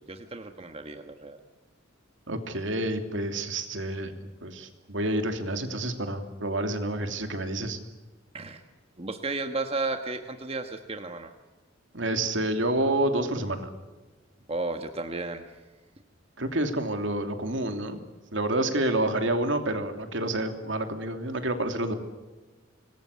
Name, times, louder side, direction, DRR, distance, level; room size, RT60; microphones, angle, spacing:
voice 1, 0.0-1.4 8.3-8.6 9.0-11.3 14.5-15.4, right 3 dB, 30° right, 6 dB, 1.4 m, -33 dB
voice 2, 2.3-4.1 4.4-7.8 11.9-13.7 16.4-18.0 18.3-21.9, right 1 dB, 65° right, 6 dB, 2.9 m, -28 dB
26.0 x 21.0 x 8.4 m, 1.2 s
head